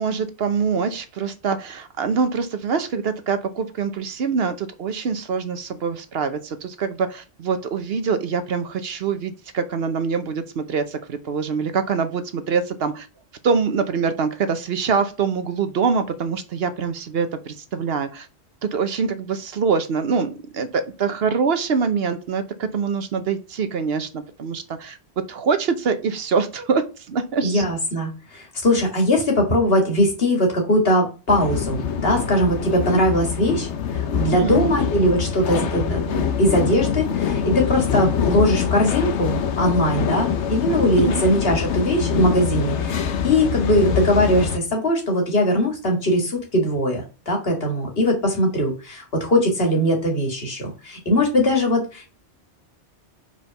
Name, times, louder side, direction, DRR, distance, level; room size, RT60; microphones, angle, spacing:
voice 1, 0.0-13.1 13.4-18.3 18.6-25.0 25.3-27.6 34.3-34.6 41.0-41.2, right 5 dB, 65° right, 9 dB, 1.0 m, -24 dB
voice 2, 27.4-52.1, equal, 60° left, 1 dB, 2.1 m, -21 dB
sound 1, 31.3-44.6, left 7 dB, 80° left, 1.0 m, -24 dB
4.8 x 4.1 x 5.7 m, 0.33 s
omnidirectional pair, 1.2 m